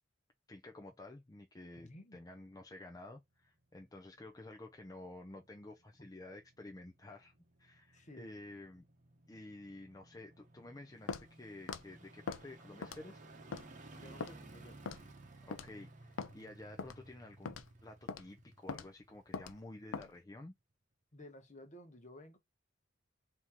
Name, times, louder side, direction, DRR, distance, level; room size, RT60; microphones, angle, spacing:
voice 1, 0.5-7.3 7.6-8.8 9.3-13.2 15.4-17.6 17.8-20.5, left 2 dB, 20° left, 0.5 m, -51 dB
voice 2, 1.7-2.2 6.0-6.1 7.9-8.3 13.8-14.8 21.1-22.4, left 1 dB, 40° left, 1.2 m, -54 dB
sound 1, 3.4-20.0 20.4-20.5, right 2 dB, 40° right, 1.0 m, -58 dB
Walk footsteps, 11.1-11.3 11.7-11.8 12.3-12.4 12.8-13.1 13.5-13.7 14.2-14.3 14.9-15.1 15.5-15.7 16.2-16.3 16.8-17.0 17.4-17.7 18.1-18.2 18.7-18.9 19.3-19.5 19.9-20.1, left 5 dB, 80° left, 0.5 m, -41 dB
4.3 x 2.9 x 3.5 m
head